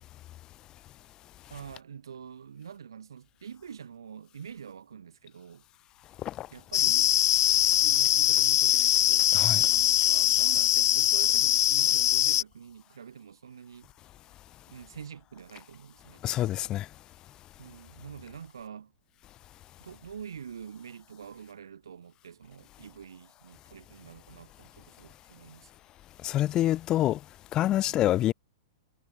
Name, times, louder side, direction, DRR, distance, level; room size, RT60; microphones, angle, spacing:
voice 1, 1.5-5.6 6.5-7.1 7.8-13.9 14.7-16.2 17.6-18.9 19.8-25.7 27.9-28.0, right 7 dB, 70° right, 6.4 m, -46 dB
sound 1, 6.7-12.4, left 13 dB, 55° left, 0.6 m, -22 dB
voice 2, 16.2-16.8 26.2-27.2 27.5-28.3, left 13 dB, 30° left, 1.5 m, -26 dB
figure-of-eight pair, 105°, 2 cm